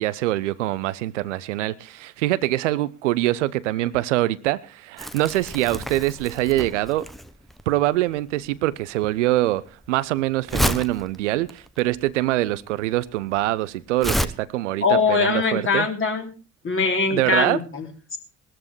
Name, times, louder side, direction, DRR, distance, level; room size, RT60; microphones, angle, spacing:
voice 1, 0.0-7.1 7.7-15.9 17.1-17.6, right 16 dB, 75° right, 0.6 m, -24 dB
Crumpling crinkling, 5.0-14.3, equal, ahead, 0.9 m, -30 dB
voice 2, 14.8-16.3 16.6-18.2, left 4 dB, 35° left, 3.3 m, -22 dB
20.0 x 13.5 x 3.1 m
figure-of-eight pair, 45°, 37 cm